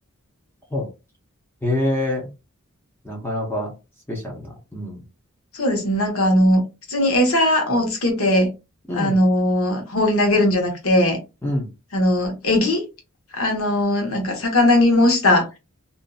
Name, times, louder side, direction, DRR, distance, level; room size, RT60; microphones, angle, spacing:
voice 1, 1.6-2.3 3.0-3.7 4.1-5.0 8.9-9.2 11.4-11.7, left 1 dB, 10° left, 0.7 m, -25 dB
voice 2, 5.5-6.6 6.9-8.5 9.0-11.2 11.9-12.8 13.3-15.5, left 1 dB, 85° left, 1.0 m, -19 dB
2.7 x 2.5 x 2.3 m
head